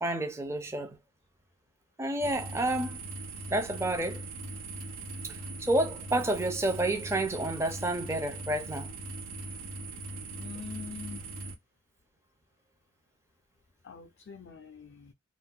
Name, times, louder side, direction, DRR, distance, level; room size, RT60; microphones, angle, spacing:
voice 1, 0.0-1.0 2.0-3.0 3.5-4.2 5.3-8.9, right 1 dB, 15° right, 0.5 m, -30 dB
sound 1, 2.2-11.5, right 2 dB, 85° right, 0.7 m, -40 dB
voice 2, 10.3-11.2 13.8-15.1, left 6 dB, 55° left, 0.4 m, -44 dB
2.4 x 2.2 x 3.7 m
head